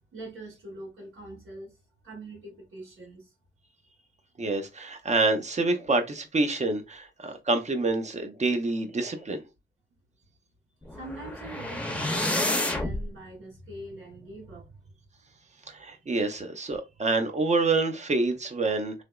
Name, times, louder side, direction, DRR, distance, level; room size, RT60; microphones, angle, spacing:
voice 1, 0.1-1.8 2.0-3.3 10.9-14.9 15.6-15.7, right 1 dB, 85° right, 2.1 m, -43 dB
voice 2, 4.4-9.4 15.7-19.0, right 3 dB, 35° right, 0.6 m, -27 dB
sound 1, 10.9-13.0, left 1 dB, 5° left, 0.7 m, -29 dB
3.4 x 2.9 x 2.3 m
wide cardioid pair, 100°, 21 cm